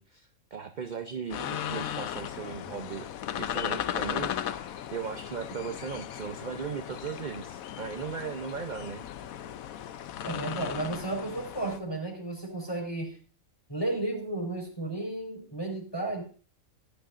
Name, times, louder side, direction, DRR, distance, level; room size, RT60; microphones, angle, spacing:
voice 1, 0.0-3.1 3.4-9.0, right 6 dB, 45° right, 8 dB, 0.7 m, -37 dB
sound 1, 1.3-11.8, left 10 dB, 85° left, 1.1 m, -36 dB
voice 2, 10.2-13.2 13.7-16.2, right 2 dB, 15° left, 1 dB, 4.5 m, -33 dB
17.0 x 10.5 x 2.5 m, 0.40 s
omnidirectional pair, 1.4 m